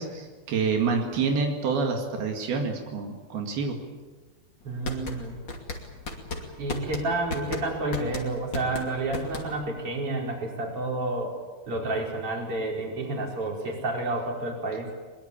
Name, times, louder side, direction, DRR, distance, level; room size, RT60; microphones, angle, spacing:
voice 1, 0.0-3.8, right 5 dB, 85° right, 2 dB, 4.0 m, -27 dB
sound 1, 4.6-9.8, left 2 dB, 35° left, 2.9 m, -35 dB
voice 2, 4.6-5.4 6.6-11.3 11.7-14.9, right 2 dB, 35° right, -1 dB, 5.5 m, -30 dB
22.5 x 22.0 x 8.7 m, 1.4 s
omnidirectional pair, 4.3 m